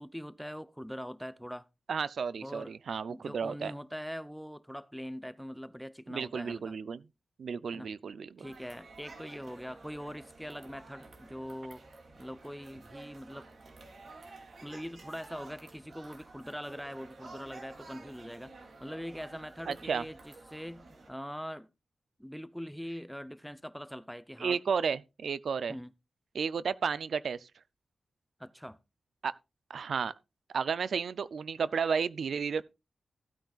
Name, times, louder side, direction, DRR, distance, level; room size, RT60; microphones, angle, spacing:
voice 1, 0.0-1.7 2.4-2.7 3.1-6.8 7.7-7.9 8.4-11.9 12.2-13.5 14.6-18.5 18.8-21.7 22.2-24.6 25.7-25.9 28.4-28.8, equal, ahead, 0.6 m, -42 dB
voice 2, 1.9-3.7 6.1-7.0 7.4-8.5 19.7-20.0 24.4-25.7 26.3-27.5 29.2-29.3 29.7-30.1 30.5-32.6, right 6 dB, 80° right, 0.4 m, -32 dB
sound 1, 8.4-21.1, right 3 dB, 65° right, 2.7 m, -52 dB
15.5 x 9.0 x 2.4 m
wide cardioid pair, 90°, 0 cm